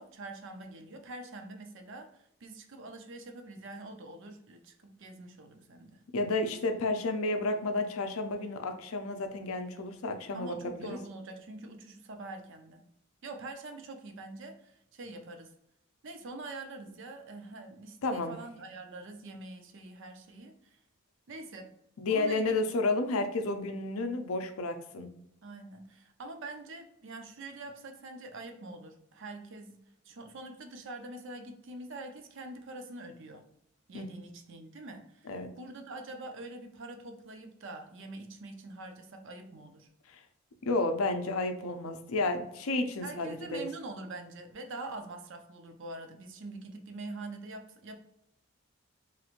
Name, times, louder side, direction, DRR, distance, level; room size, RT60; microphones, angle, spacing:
voice 1, 0.0-6.0 10.3-12.8 13.2-15.5 16.0-20.8 21.3-21.7 22.1-22.6 25.4-29.8 30.0-33.4 33.9-39.9 43.0-48.0, right 2 dB, 55° right, 5 dB, 0.5 m, -44 dB
voice 2, 6.1-11.0 18.0-18.4 22.0-25.1 33.9-34.1 35.3-35.5 40.7-43.7, left 2 dB, 70° left, 7 dB, 0.5 m, -31 dB
3.1 x 2.9 x 2.4 m, 0.77 s
head